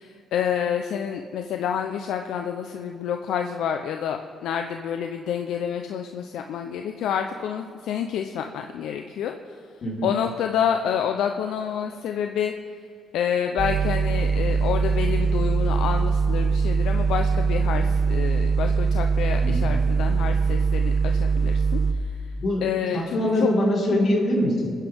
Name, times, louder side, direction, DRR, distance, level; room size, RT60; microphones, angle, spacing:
voice 1, 0.0-9.3 10.0-12.5 13.1-21.8 22.6-23.5, left 8 dB, 80° left, 5 dB, 0.6 m, -28 dB
sound 1, 13.6-21.9, right 5 dB, 35° right, 1.0 m, -22 dB
voice 2, 22.9-24.7, left 1 dB, 55° left, -3 dB, 4.3 m, -23 dB
26.5 x 10.5 x 3.6 m, 2.3 s
cardioid pair, 90°, 0 cm